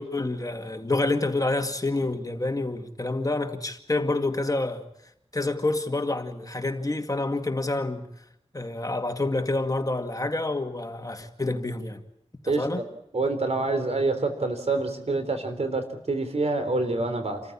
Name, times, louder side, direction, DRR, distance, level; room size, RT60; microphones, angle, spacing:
voice 1, 0.0-4.8 5.3-8.1 8.5-12.0 12.4-12.8, left 2 dB, 30° left, 2.2 m, -28 dB
voice 2, 12.5-12.9 13.1-17.4, right 3 dB, 70° right, 3.8 m, -27 dB
28.0 x 14.5 x 8.7 m
wide cardioid pair, 65°, 11 cm